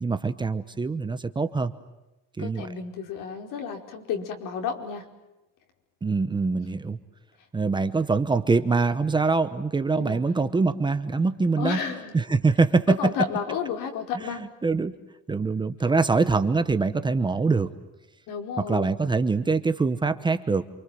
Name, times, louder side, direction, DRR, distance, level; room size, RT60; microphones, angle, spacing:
voice 1, 0.0-1.7 2.4-2.7 6.0-7.0 7.5-11.8 12.1-13.1 14.2-14.9 15.3-17.7 18.6-20.7, right 4 dB, 15° right, 10 dB, 0.9 m, -24 dB
voice 2, 2.4-5.0 6.5-6.6 9.9-10.2 11.6-12.1 12.9-14.4 18.3-18.9, left 7 dB, 80° left, 3 dB, 4.9 m, -31 dB
28.0 x 26.5 x 7.8 m, 0.98 s
cardioid pair, 180°, 32 cm